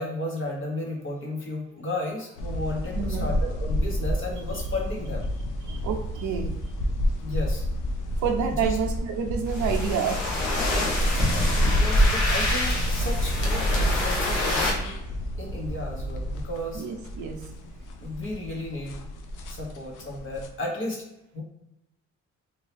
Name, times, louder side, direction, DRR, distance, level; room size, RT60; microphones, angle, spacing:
voice 1, 0.0-5.3 7.2-7.6 8.6-8.8 11.1-11.4 11.7-15.0 15.4-16.8 18.0-19.0 19.5-21.0 21.3-21.4, left 1 dB, 40° left, -1 dB, 1.2 m, -33 dB
sound 1, 2.4-20.5, equal, 90° left, 0.5 m, -31 dB
voice 2, 2.9-3.3 5.6-6.5 8.2-10.4 16.7-17.5, right 7 dB, 75° right, 3 dB, 0.6 m, -28 dB
sound 2, 9.5-14.7, left 1 dB, 70° left, 1.0 m, -24 dB
2.9 x 2.6 x 3.3 m, 0.88 s
cardioid pair, 90°, 30 cm